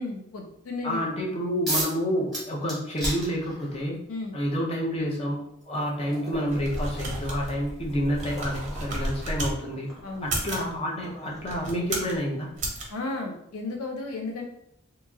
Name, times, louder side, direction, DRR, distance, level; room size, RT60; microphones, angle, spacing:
voice 1, 0.0-1.0 4.1-4.3 10.0-10.3 12.9-14.4, left 2 dB, 85° left, 1 dB, 0.5 m, -33 dB
voice 2, 0.8-4.0 4.3-9.9 10.2-12.5, equal, 30° left, -2 dB, 0.5 m, -29 dB
sound 1, 1.7-2.0 2.3-3.9 5.0-5.1 5.6-12.3, right 1 dB, ahead, 1.1 m, -37 dB
sound 2, 6.3-9.6 10.2-10.7 11.4-12.2 12.6-12.8, right 1 dB, 35° right, 0.6 m, -32 dB
2.8 x 2.7 x 2.3 m, 0.77 s
head